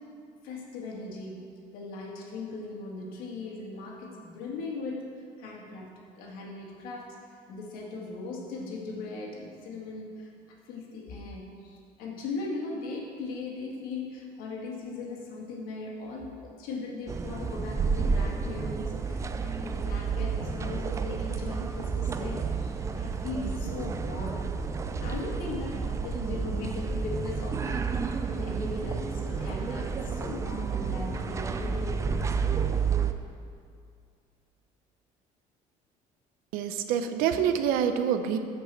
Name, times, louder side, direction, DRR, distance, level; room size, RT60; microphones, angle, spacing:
voice 1, 0.4-10.3 10.7-24.5 24.9-32.4, left 3 dB, 85° left, -1 dB, 2.0 m, -39 dB
sound 1, 17.1-33.1, right 5 dB, 20° right, 0.4 m, -31 dB
voice 2, 36.5-38.4, right 8 dB, 85° right, 8 dB, 0.7 m, -26 dB
15.0 x 5.3 x 4.5 m, 2.3 s
cardioid pair, 140°, 14 cm